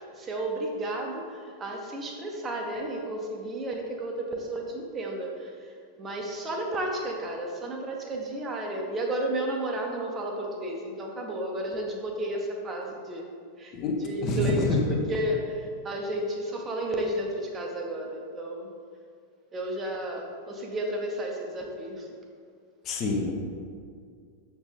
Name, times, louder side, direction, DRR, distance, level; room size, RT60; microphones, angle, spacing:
voice 1, 0.0-5.5 6.0-13.3 13.6-13.7 14.0-18.7 19.5-22.1, right 1 dB, 25° right, 1 dB, 0.8 m, -32 dB
voice 2, 13.7-14.8 22.8-23.3, left 2 dB, 35° left, 1 dB, 0.8 m, -27 dB
6.8 x 4.4 x 3.5 m, 2.1 s
figure-of-eight pair, 90°, 0 cm